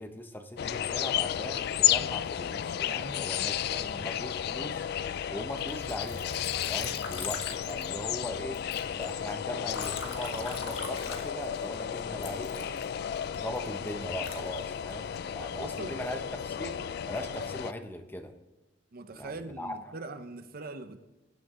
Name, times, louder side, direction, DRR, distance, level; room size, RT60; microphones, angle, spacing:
voice 1, 0.0-4.9 5.3-6.4 6.7-8.6 8.9-12.8 13.3-16.8 17.1-18.3 19.1-19.8, left 1 dB, 10° left, 0.8 m, -39 dB
sound 1, 0.6-17.7, left 10 dB, 55° left, 0.3 m, -33 dB
voice 2, 2.9-3.3 15.6-16.0 18.9-21.0, right 3 dB, 50° right, 0.7 m, -41 dB
Liquid, 5.7-8.3 8.5-11.7 12.2-15.2 15.8-16.3, left 4 dB, 90° left, 1.7 m, -42 dB
18.0 x 10.5 x 3.7 m
head